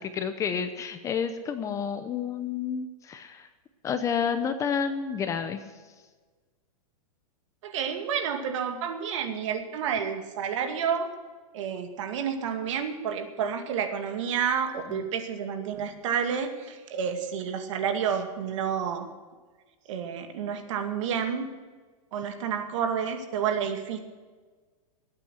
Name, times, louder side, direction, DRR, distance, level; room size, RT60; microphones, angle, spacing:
voice 1, 0.0-3.5 3.8-5.6 14.9-15.0, left 7 dB, 15° left, 9 dB, 0.8 m, -30 dB
voice 2, 7.6-11.1 11.5-19.1 19.9-21.5 22.1-24.0, right 7 dB, 55° right, 6 dB, 2.2 m, -30 dB
20.0 x 8.8 x 6.4 m, 1.4 s
supercardioid pair, 155°, 19 cm